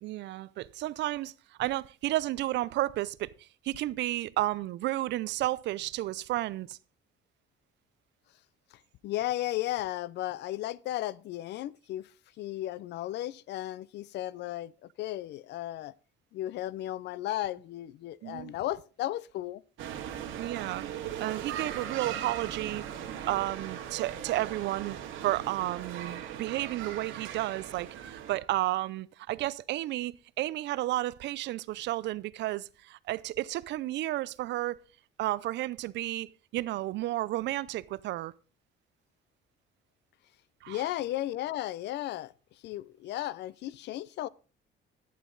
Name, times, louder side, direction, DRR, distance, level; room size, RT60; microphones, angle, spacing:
voice 1, 0.0-1.3 1.6-6.8 18.2-18.5 20.4-20.8 21.2-22.8 23.3-25.0 25.2-34.8 35.2-38.3 40.6-40.8, right 16 dB, 60° right, 0.4 m, -32 dB
voice 2, 9.0-12.1 12.4-15.9 16.3-19.6 40.7-42.3 42.6-44.3, left 14 dB, 60° left, 0.4 m, -35 dB
sound 1, 19.8-28.4, right 9 dB, 75° right, 2.0 m, -39 dB
11.0 x 9.0 x 3.8 m
cardioid pair, 175°, 21 cm